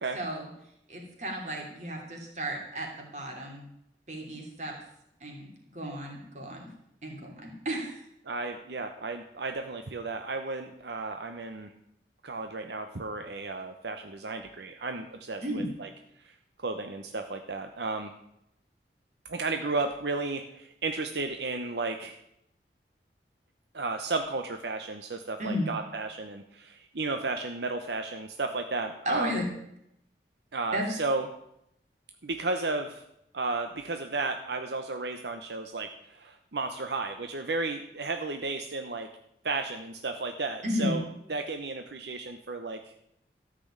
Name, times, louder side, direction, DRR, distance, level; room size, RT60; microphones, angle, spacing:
voice 1, 0.1-0.5 0.9-3.7 4.1-4.8 5.2-6.7 7.0-8.1 15.4-15.7 25.4-25.7 29.0-29.5 30.7-30.9 40.6-41.0, equal, 40° right, 1 dB, 3.0 m, -33 dB
voice 2, 8.3-11.7 12.2-15.9 16.2-18.1 19.3-22.2 23.7-29.4 30.5-31.2 32.2-33.0 33.3-39.1 39.4-41.0 41.3-42.9, right 3 dB, 75° right, 6 dB, 0.9 m, -33 dB
13.5 x 6.1 x 8.7 m, 0.78 s
head